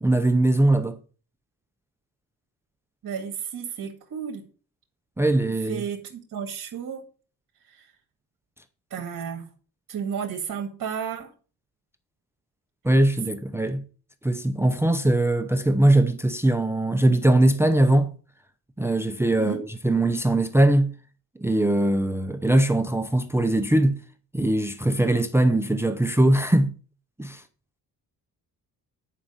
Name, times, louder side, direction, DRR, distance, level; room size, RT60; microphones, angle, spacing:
voice 1, 0.0-1.0 5.2-5.8 12.8-13.8 14.2-18.1 18.8-20.9 21.4-24.0 24.3-26.7 27.2-27.4, right 1 dB, 5° right, 0.6 m, -21 dB
voice 2, 3.0-4.4 5.7-7.0 7.7-7.9 8.9-9.4 9.9-11.3 19.4-19.6, right 7 dB, 60° right, 2.0 m, -32 dB
10.0 x 5.1 x 5.5 m
cardioid pair, 135°, 37 cm